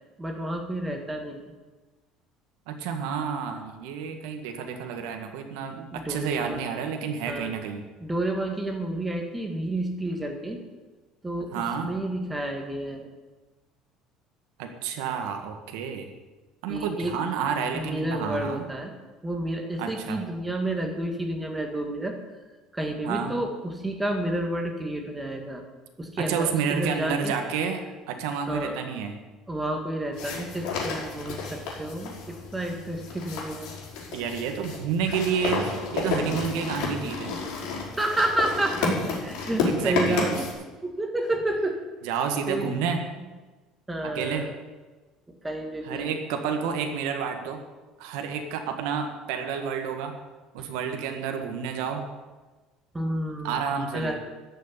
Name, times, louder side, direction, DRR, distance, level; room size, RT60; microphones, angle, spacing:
voice 1, 0.2-1.5 5.9-6.8 7.3-7.5 8.0-10.6 11.2-13.1 16.7-17.1 17.7-18.9 19.2-22.2 22.7-25.6 26.0-27.3 28.5-28.8 29.5-33.7 38.0-40.5 40.8-41.8 42.5-42.7 43.9-44.5 45.4-46.1 52.9-53.7 53.9-54.2, right 1 dB, 10° right, 4 dB, 1.8 m, -30 dB
voice 2, 2.7-7.8 11.5-11.9 14.6-16.1 16.6-18.6 19.8-20.2 23.0-23.4 26.2-29.1 34.1-37.3 39.6-40.2 42.0-43.0 44.0-44.5 45.8-47.6 48.0-50.1 50.5-52.1 53.4-54.2, right 6 dB, 85° right, 4 dB, 1.7 m, -30 dB
sound 1, 30.1-40.5, left 4 dB, 65° left, 4.9 m, -31 dB
14.0 x 6.5 x 9.7 m, 1.2 s
cardioid pair, 165°, 0 cm